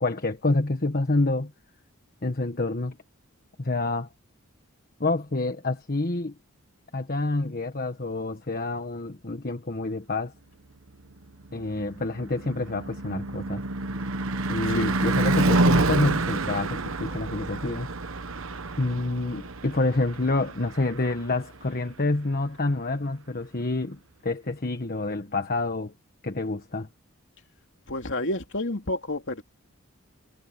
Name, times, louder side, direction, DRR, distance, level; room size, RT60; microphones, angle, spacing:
voice 1, 0.0-1.5 2.2-2.9 3.6-4.1 5.0-6.3 6.9-10.3 11.5-13.6 14.5-17.9 18.8-25.9 26.2-26.9, left 2 dB, 45° left, 1.3 m, -28 dB
Car passing by / Truck / Engine, 11.4-21.7, right 2 dB, 65° right, 1.1 m, -28 dB
voice 2, 14.6-15.0 27.9-29.4, left 1 dB, 60° left, 2.9 m, -30 dB
head